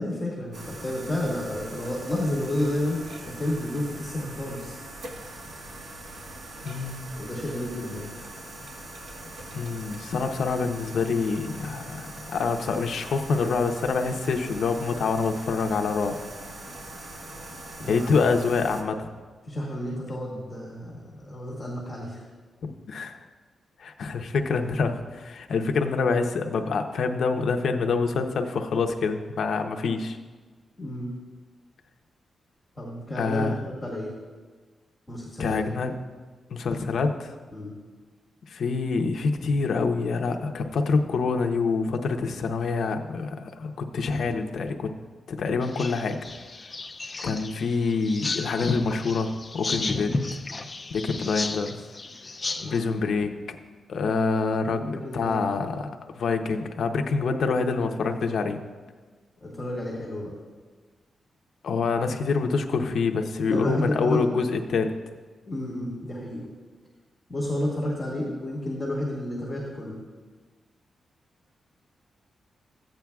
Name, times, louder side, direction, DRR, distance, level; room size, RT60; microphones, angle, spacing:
voice 1, 0.0-4.8 7.1-8.1 17.8-18.1 19.4-22.2 30.8-31.1 32.8-34.1 35.1-35.6 37.5-37.7 50.1-50.2 52.5-53.0 54.7-55.7 59.4-60.3 63.4-64.2 65.5-66.5 67.3-70.0, left 1 dB, 5° left, -8 dB, 1.9 m, -31 dB
sound 1, 0.5-18.8, right 1 dB, 70° right, 1.3 m, -42 dB
voice 2, 6.6-7.1 9.5-16.1 17.9-19.1 22.9-23.2 23.8-30.2 33.2-33.5 35.4-35.9 36.5-37.3 38.5-44.9 45.3-46.2 47.2-50.1 50.9-51.8 52.6-53.6 53.9-55.8 56.1-58.6 61.6-64.9, left 4 dB, 65° left, 5 dB, 0.7 m, -26 dB
sound 2, 45.6-52.8, left 3 dB, 20° left, 0.4 m, -34 dB
15.0 x 8.8 x 2.4 m, 1.4 s
wide cardioid pair, 170°, 0 cm